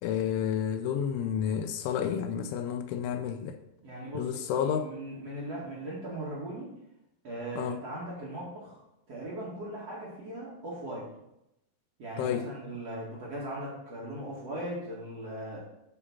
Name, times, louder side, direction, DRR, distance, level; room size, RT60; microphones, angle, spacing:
voice 1, 0.0-3.6 4.1-4.9 7.6-7.8 12.2-12.5, left 8 dB, 80° left, 8 dB, 3.0 m, -30 dB
voice 2, 3.8-6.7 7.2-8.8 9.1-11.1 12.0-15.6, right 1 dB, 45° right, -7 dB, 2.1 m, -39 dB
9.8 x 5.7 x 6.0 m, 0.85 s
omnidirectional pair, 5.6 m